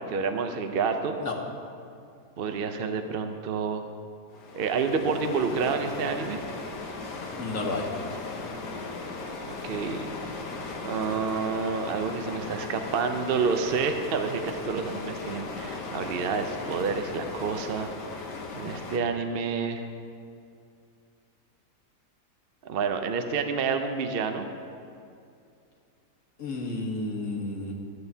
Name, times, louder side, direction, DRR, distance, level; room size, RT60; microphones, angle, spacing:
voice 1, 0.0-1.2 2.4-3.9 4.5-6.4 9.4-10.1 10.8-17.9 18.2-19.9 22.6-24.5, right 5 dB, 60° right, 6 dB, 0.6 m, -29 dB
sound 1, 4.3-19.0, left 3 dB, 90° left, 1.7 m, -37 dB
voice 2, 7.4-7.9 26.4-27.7, left 2 dB, 50° left, 0 dB, 1.7 m, -31 dB
16.0 x 12.5 x 2.8 m, 2.4 s
omnidirectional pair, 1.8 m